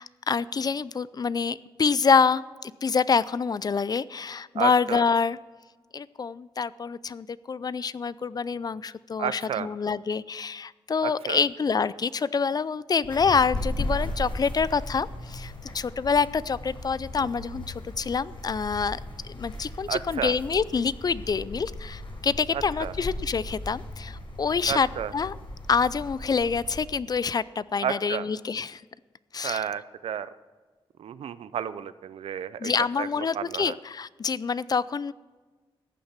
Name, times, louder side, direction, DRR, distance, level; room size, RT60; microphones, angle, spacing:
voice 1, 0.0-5.4 5.9-24.9 25.1-25.3 25.7-28.8 29.3-29.7 32.6-35.1, left 5 dB, 45° left, 19 dB, 0.4 m, -26 dB
voice 2, 4.6-5.0 9.2-9.7 11.0-11.4 17.2-17.3 19.9-20.3 22.5-22.9 24.7-25.1 27.8-28.3 29.4-30.3 31.0-32.7 33.0-33.8, right 9 dB, 85° right, 15 dB, 0.6 m, -32 dB
sound 1, 13.0-26.8, left 1 dB, 60° left, 4.1 m, -37 dB
14.5 x 8.7 x 5.9 m, 1.3 s
cardioid pair, 70°, 10 cm